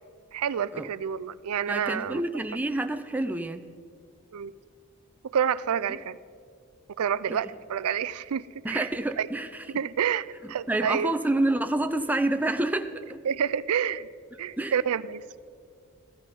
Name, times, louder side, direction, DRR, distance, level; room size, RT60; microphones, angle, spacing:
voice 1, 0.3-2.2 4.3-4.5 5.2-6.2 7.0-8.9 9.2-9.3 9.7-11.1 13.2-14.1 14.4-15.2, right 8 dB, 90° right, 18 dB, 0.4 m, -28 dB
voice 2, 1.7-3.6 5.9-6.0 7.4-7.5 8.6-9.6 10.4-13.2 14.6-14.7, right 1 dB, 5° right, 8 dB, 0.5 m, -28 dB
15.5 x 13.5 x 5.2 m, 2.2 s
head